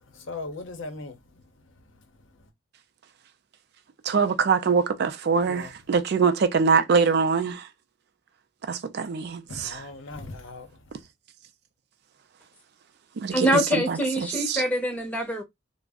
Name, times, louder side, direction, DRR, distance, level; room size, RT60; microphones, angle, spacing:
voice 1, 0.1-1.2 5.4-5.7 9.5-10.7, left 3 dB, 70° left, 0.7 m, -38 dB
voice 2, 4.0-7.7 8.7-9.8 13.2-14.6, right 5 dB, 55° right, 0.4 m, -24 dB
voice 3, 13.3-15.4, equal, 10° left, 0.7 m, -25 dB
2.5 x 2.0 x 3.4 m
head